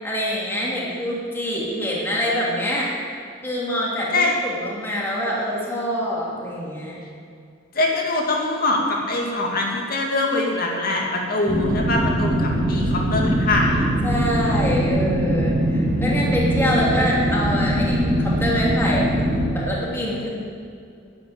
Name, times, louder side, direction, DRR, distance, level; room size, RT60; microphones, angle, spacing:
voice 1, 0.0-2.9 3.4-7.0 14.0-19.1 19.5-20.3, equal, 10° left, -5 dB, 2.7 m, -25 dB
voice 2, 7.7-13.8, left 2 dB, 50° left, -1 dB, 2.4 m, -23 dB
sound 1, 11.5-19.5, right 1 dB, 40° right, 2.5 m, -21 dB
11.0 x 9.2 x 8.7 m, 2.4 s
head